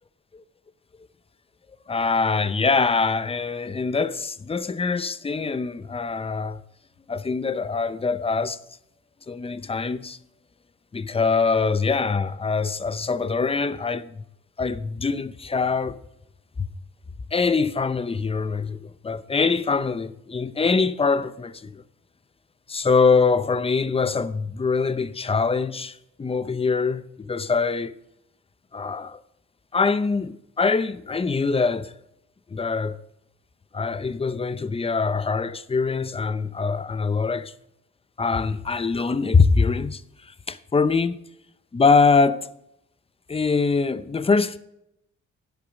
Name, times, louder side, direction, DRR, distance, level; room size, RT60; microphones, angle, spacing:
voice 1, 1.9-6.6 7.1-8.6 9.3-10.2 10.9-14.2 14.6-16.0 16.6-16.7 17.3-21.8 22.7-27.9 28.7-29.2 29.7-31.9 32.5-33.0 33.7-37.5 38.2-41.1 41.7-42.5 43.3-44.6, left 4 dB, 20° left, 0.6 m, -23 dB
10.5 x 8.2 x 5.1 m
cardioid pair, 90°, 30 cm